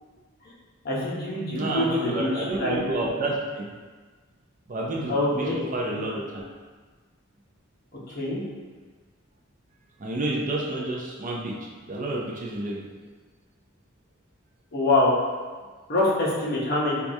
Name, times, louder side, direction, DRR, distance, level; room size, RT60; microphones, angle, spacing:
voice 1, 0.8-2.8 5.1-5.7 5.9-6.0 8.1-8.4 14.7-15.1 15.9-17.0, left 2 dB, 45° left, -5 dB, 0.8 m, -25 dB
voice 2, 1.5-3.7 4.7-5.5 5.7-6.4 10.0-11.6 11.9-12.8, right 2 dB, 40° right, -2 dB, 0.4 m, -29 dB
4.6 x 2.3 x 2.6 m, 1.4 s
head